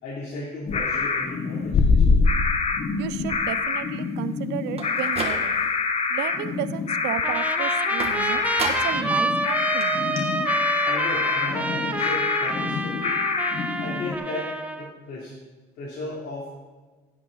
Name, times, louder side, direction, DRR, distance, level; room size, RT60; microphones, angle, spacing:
voice 1, 0.0-2.2 10.8-13.2 13.8-15.3 15.7-16.5, left 2 dB, 70° left, -7 dB, 3.1 m, -35 dB
sound 1, 0.7-14.1, left 4 dB, 40° left, 1.0 m, -25 dB
voice 2, 2.9-5.7 6.1-10.0, right 13 dB, 85° right, 15 dB, 0.5 m, -33 dB
sound 2, 4.7-5.8 6.2-6.7 8.0-9.1 9.4-9.5 9.8-9.9 10.2-10.3, right 4 dB, 35° right, 1.8 m, -33 dB
Trumpet, 7.2-14.9, right 2 dB, 10° right, 0.8 m, -28 dB
16.0 x 8.5 x 4.0 m, 1.3 s
cardioid pair, 110°, 17 cm